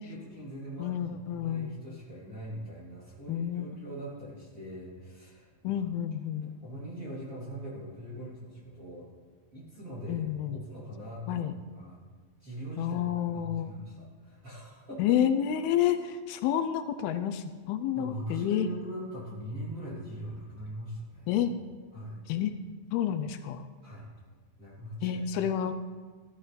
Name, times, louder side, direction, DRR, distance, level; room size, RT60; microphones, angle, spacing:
voice 1, 0.0-5.8 6.4-9.1 9.5-12.0 12.4-15.2 17.9-21.3 21.9-22.2 23.8-24.1 24.6-25.3, right 1 dB, 25° right, -7 dB, 2.5 m, -42 dB
voice 2, 0.8-1.7 3.3-3.8 5.6-6.6 10.1-10.6 11.3-11.5 12.8-13.7 15.0-18.7 21.3-21.5 22.3-22.5 22.9-23.6 25.0-25.7, left 10 dB, 85° left, 10 dB, 2.4 m, -29 dB
13.5 x 13.5 x 3.3 m, 1.5 s
omnidirectional pair, 4.5 m